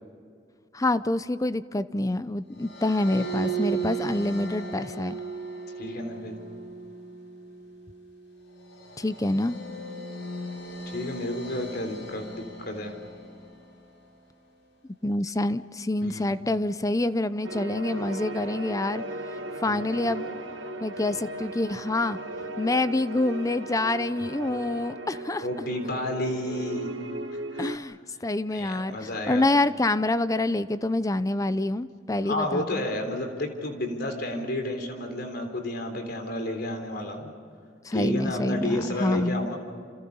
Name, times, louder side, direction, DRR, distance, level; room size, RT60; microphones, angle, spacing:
voice 1, 0.7-5.2 9.0-9.6 15.0-19.0 19.6-20.3 20.8-22.2 22.6-25.4 27.6-28.0 28.2-32.8 37.8-39.5, left 2 dB, 20° left, 14 dB, 0.6 m, -26 dB
sound 1, 2.6-13.9, right 4 dB, 90° left, 6.0 m, -37 dB
voice 2, 5.8-6.4 10.9-12.9 16.0-16.2 19.7-19.8 25.4-26.9 27.5-27.8 28.5-29.4 32.2-37.3 37.9-39.6, left 1 dB, 60° left, 5 dB, 3.7 m, -31 dB
sound 2, 17.4-27.8, right 2 dB, 90° right, 1.6 m, -37 dB
29.0 x 28.5 x 5.5 m, 2.3 s
head